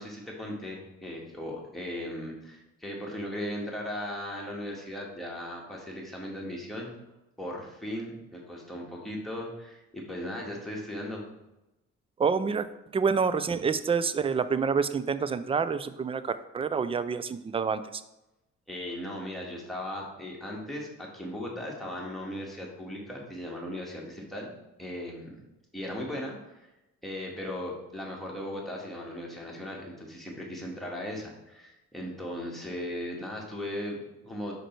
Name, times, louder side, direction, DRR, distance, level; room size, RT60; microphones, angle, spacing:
voice 1, 0.0-6.9 7.4-11.3 18.7-24.5 24.8-25.3 25.7-26.7 27.0-34.6, left 1 dB, ahead, -3 dB, 1.7 m, -37 dB
voice 2, 12.2-12.7 12.9-18.0, right 5 dB, 20° right, 13 dB, 0.3 m, -27 dB
5.0 x 4.5 x 4.5 m, 0.96 s
cardioid pair, 90°, 30 cm